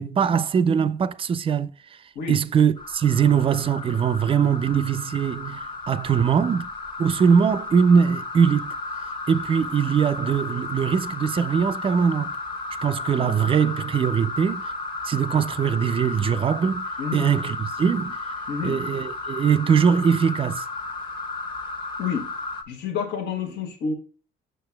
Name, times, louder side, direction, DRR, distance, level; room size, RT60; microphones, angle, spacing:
voice 1, 0.0-2.0 2.3-6.7 7.0-8.7 9.3-12.3 12.8-14.7 15.0-16.8 17.1-18.2 18.6-20.6, right 7 dB, 35° right, 0.4 m, -21 dB
sound 1, 2.8-22.6, left 3 dB, 30° left, 1.0 m, -33 dB
voice 2, 18.5-18.8 22.0-22.3 22.7-23.9, left 6 dB, 85° left, 1.5 m, -29 dB
6.7 x 6.4 x 2.2 m
cardioid pair, 110°, 17 cm